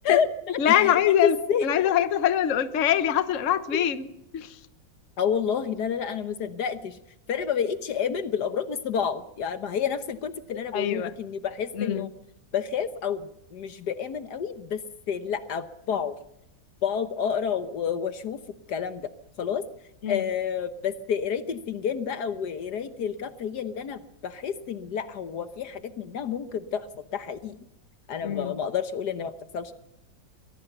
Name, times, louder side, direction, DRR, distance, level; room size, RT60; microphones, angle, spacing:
voice 1, 0.0-1.9 3.7-3.9 5.2-7.0 7.3-12.1 12.5-16.2 16.8-18.4 18.7-19.1 19.4-19.6 20.1-26.9 27.1-27.6 28.1-29.7, left 7 dB, 65° left, 12 dB, 1.5 m, -29 dB
voice 2, 0.6-1.3 1.6-4.1 4.3-4.5 10.7-11.1 11.9-12.0 20.0-20.2 28.2-28.5, left 10 dB, 50° left, 12 dB, 1.3 m, -23 dB
23.0 x 17.0 x 6.8 m, 0.85 s
omnidirectional pair, 2.0 m